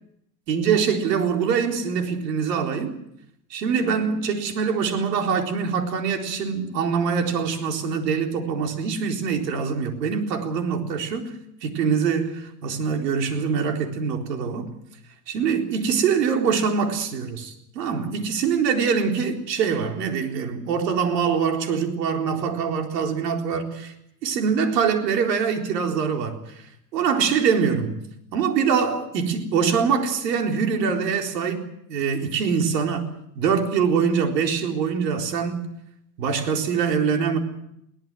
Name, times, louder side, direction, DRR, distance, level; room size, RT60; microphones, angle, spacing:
voice 1, 0.5-3.0 3.5-11.3 11.6-14.7 15.3-23.9 24.2-26.4 26.9-28.0 28.3-33.1 33.4-35.6 36.2-37.4, right 6 dB, 85° right, 4.2 m, -24 dB
22.0 x 18.0 x 7.7 m
supercardioid pair, 175°, 48 cm